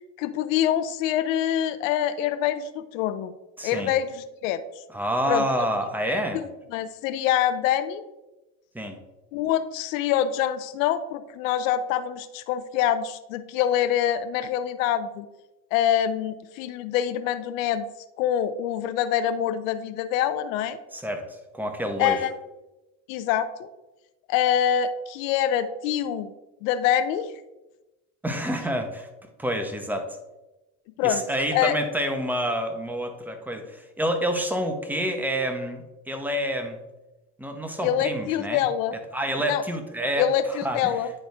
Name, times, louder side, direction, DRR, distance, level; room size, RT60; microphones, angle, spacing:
voice 1, 0.2-3.3 3.6-4.6 5.3-5.4 6.3-6.4 6.7-8.0 9.3-15.3 15.7-17.8 18.2-20.8 22.0-22.3 23.1-23.7 24.3-26.3 26.6-27.3 31.0-31.2 31.5-31.7 37.8-39.0 39.5-39.6 40.2-41.1, left 10 dB, 85° left, 12 dB, 0.6 m, -25 dB
voice 2, 3.6-3.9 4.9-6.4 8.7-9.0 20.9-22.2 28.2-29.1 29.4-30.2 31.0-36.8 37.4-38.6 39.1-40.9, equal, 5° right, 5 dB, 1.1 m, -28 dB
10.0 x 4.1 x 3.5 m, 1.0 s
supercardioid pair, 90°, 39 cm